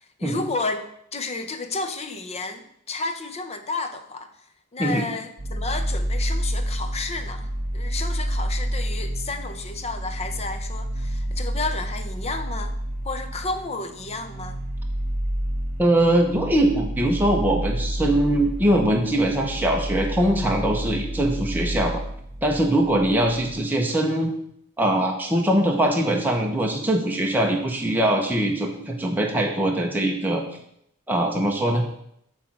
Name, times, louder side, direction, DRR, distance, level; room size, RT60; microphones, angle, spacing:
voice 1, 0.2-0.9 1.1-4.3 4.7-12.7 13.0-14.6, left 3 dB, 30° left, 8 dB, 0.7 m, -31 dB
sound 1, 5.4-23.6, right 1 dB, 50° right, 1.6 m, -29 dB
voice 2, 15.8-22.0 22.4-24.3 24.8-30.4 31.1-31.8, right 1 dB, 10° right, 0 dB, 0.8 m, -22 dB
8.6 x 3.7 x 6.0 m, 0.72 s
head